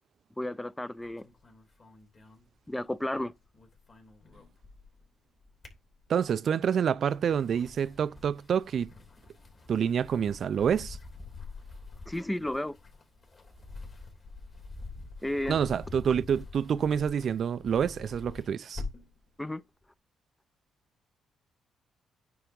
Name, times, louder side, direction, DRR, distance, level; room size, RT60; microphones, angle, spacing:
voice 1, 0.4-1.3 2.7-3.3 12.1-12.8 15.2-15.6 19.4-19.6, left 1 dB, 10° left, 0.4 m, -32 dB
sound 1, 1.0-3.2 3.4-5.0 5.4-6.4 7.0-19.2, left 3 dB, 40° left, 3.1 m, -46 dB
voice 2, 6.1-8.9 9.7-11.0 15.5-18.8, right 8 dB, 60° right, 0.4 m, -27 dB
9.3 x 3.4 x 5.2 m
cardioid pair, 90°, 0 cm